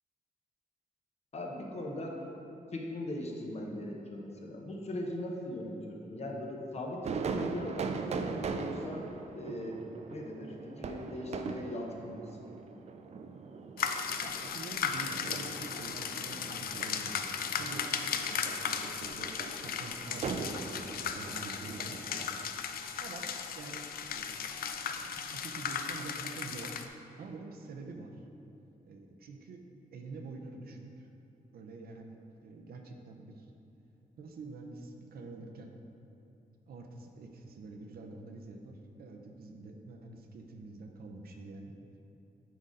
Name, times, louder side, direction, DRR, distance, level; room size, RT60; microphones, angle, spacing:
voice 1, 1.3-2.2 2.7-9.1 9.3-9.8 10.1-12.4, left 1 dB, 45° left, 0 dB, 0.8 m, -40 dB
sound 1, 7.0-22.4, right 4 dB, 45° right, 0.4 m, -40 dB
sound 2, 13.8-26.9, left 7 dB, 80° left, 0.4 m, -36 dB
voice 2, 14.2-21.9 23.0-26.8 27.2-28.2 28.8-29.6 29.9-31.1 31.5-33.5 34.2-35.7 36.7-41.8, right 3 dB, 90° right, 3 dB, 0.7 m, -47 dB
9.5 x 3.8 x 3.9 m, 2.8 s
wide cardioid pair, 145°, 15 cm